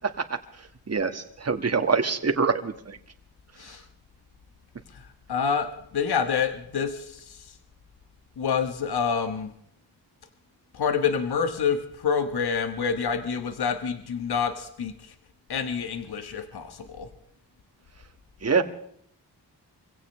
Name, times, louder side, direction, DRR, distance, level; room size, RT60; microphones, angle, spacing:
voice 1, 0.9-3.0 18.4-18.6, right 5 dB, 35° right, 6 dB, 1.7 m, -24 dB
voice 2, 5.3-7.5 8.4-9.5 10.7-15.1 15.5-17.1, left 6 dB, 65° left, 7 dB, 1.5 m, -27 dB
25.5 x 16.5 x 3.3 m, 0.69 s
cardioid pair, 80°, 41 cm